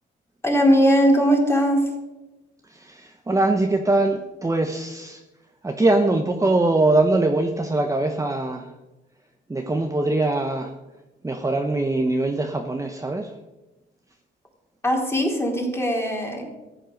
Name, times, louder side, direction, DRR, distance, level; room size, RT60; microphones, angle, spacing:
voice 1, 0.4-1.9 14.8-16.5, equal, 10° left, 0 dB, 3.9 m, -19 dB
voice 2, 2.7-5.2 5.6-8.7 9.5-10.7 11.2-13.3, right 2 dB, 15° right, 4 dB, 1.2 m, -22 dB
14.5 x 8.9 x 6.6 m, 1.1 s
cardioid pair, 90°, 20 cm